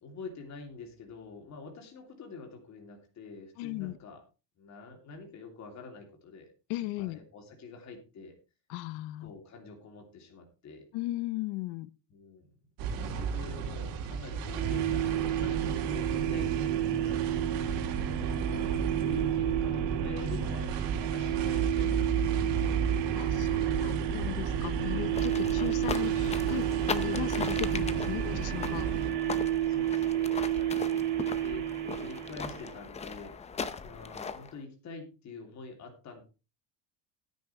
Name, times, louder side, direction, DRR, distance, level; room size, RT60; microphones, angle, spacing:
voice 1, 0.0-4.2 4.6-6.5 7.0-8.4 9.2-10.9 12.1-12.5 13.0-17.5 18.3-22.5 29.7-36.2, left 4 dB, 35° left, 3.1 m, -46 dB
voice 2, 3.6-4.0 6.7-7.2 8.7-9.3 10.9-11.9 23.1-28.9, left 17 dB, 80° left, 1.0 m, -37 dB
sound 1, 12.8-29.1, right 6 dB, 90° right, 3.5 m, -33 dB
sound 2, 14.6-32.8, right 12 dB, 55° right, 2.1 m, -31 dB
sound 3, 25.1-34.5, left 5 dB, 15° left, 0.5 m, -39 dB
16.5 x 9.5 x 3.3 m
cardioid pair, 160°, 49 cm